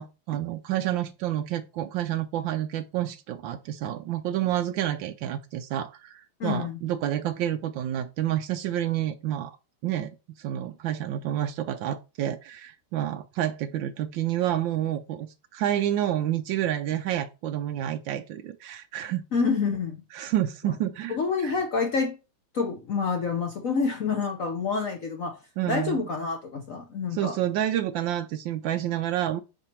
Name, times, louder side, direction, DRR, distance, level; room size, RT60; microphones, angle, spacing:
voice 1, 0.0-9.6 9.8-10.1 10.4-19.2 20.1-21.2 21.4-21.5 25.6-26.1 27.1-29.4, right 12 dB, 75° right, 1.2 m, -29 dB
voice 2, 6.4-6.8 19.3-20.0 21.1-22.2 22.5-25.4 25.7-27.4, left 5 dB, 60° left, 0.9 m, -27 dB
5.9 x 4.4 x 4.4 m
omnidirectional pair, 2.3 m